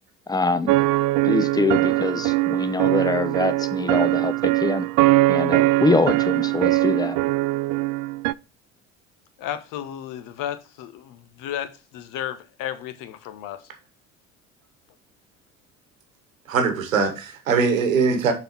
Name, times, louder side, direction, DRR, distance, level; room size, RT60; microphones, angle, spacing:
voice 1, 0.3-0.7 1.2-4.9 5.3-7.2, left 3 dB, 10° left, 0.7 m, -24 dB
sound 1, 0.7-8.3, right 19 dB, 45° right, 0.4 m, -21 dB
voice 2, 9.4-13.6, left 10 dB, 50° left, 1.0 m, -33 dB
voice 3, 16.5-18.3, right 5 dB, 80° right, 1.3 m, -21 dB
6.8 x 4.0 x 4.3 m
figure-of-eight pair, 65°, 40 cm